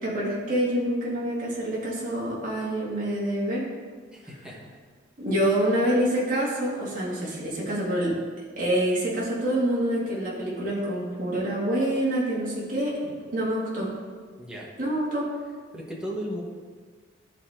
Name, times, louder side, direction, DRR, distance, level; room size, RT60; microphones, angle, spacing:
voice 1, 0.0-3.7 5.2-8.2 8.6-12.9 13.3-13.9 14.8-15.3, right 1 dB, 40° right, -6 dB, 2.5 m, -26 dB
voice 2, 4.1-4.8 13.0-13.2 14.4-14.7 15.7-16.4, equal, 5° right, -4 dB, 1.4 m, -36 dB
12.5 x 4.4 x 3.8 m, 1.5 s
head